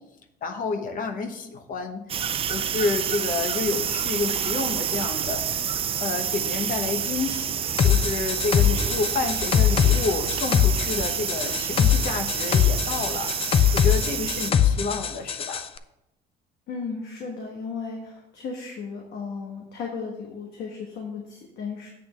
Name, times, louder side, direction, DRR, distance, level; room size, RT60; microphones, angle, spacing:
voice 1, 0.4-5.6 6.0-13.3 13.7-15.7, left 4 dB, 55° left, 6 dB, 1.0 m, -30 dB
sound 1, 2.1-14.5, right 8 dB, 35° right, 0.4 m, -28 dB
sound 2, 7.8-15.6, left 8 dB, 35° left, 0.4 m, -22 dB
voice 2, 16.7-21.9, left 5 dB, 75° left, -1 dB, 1.4 m, -35 dB
8.5 x 3.4 x 6.2 m, 0.88 s
cardioid pair, 110°, 17 cm